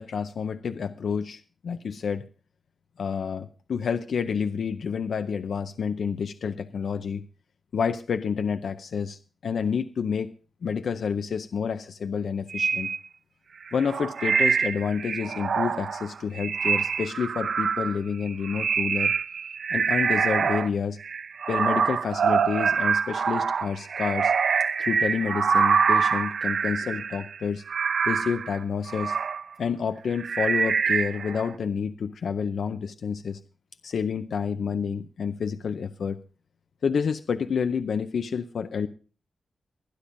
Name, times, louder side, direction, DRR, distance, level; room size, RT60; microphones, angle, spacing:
voice 1, 0.0-2.3 3.0-7.2 7.7-10.3 10.6-12.9 13.7-19.1 19.7-21.0 21.5-24.3 24.8-27.6 28.0-29.2 29.6-33.4 33.8-36.2 36.8-38.9, left 6 dB, 75° left, 9 dB, 0.5 m, -29 dB
sound 1, 12.5-13.0 13.7-20.7 21.0-29.4 30.1-31.5, right 6 dB, 65° right, 0.5 m, -25 dB
24.0 x 10.0 x 2.6 m, 0.38 s
wide cardioid pair, 170°, 0 cm